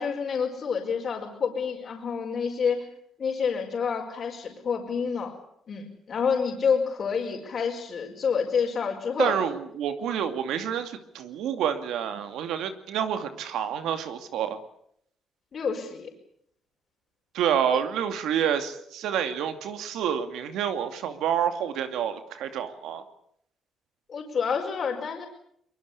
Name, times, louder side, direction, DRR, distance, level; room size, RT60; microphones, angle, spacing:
voice 1, 0.0-2.8 3.2-5.3 5.7-9.3 15.5-16.1 17.7-17.8 24.1-25.3, left 6 dB, 50° left, 1 dB, 5.1 m, -28 dB
voice 2, 9.2-14.6 17.3-23.0, right 9 dB, 85° right, 8 dB, 2.4 m, -28 dB
23.0 x 22.5 x 8.5 m, 0.70 s
cardioid pair, 90°, 0 cm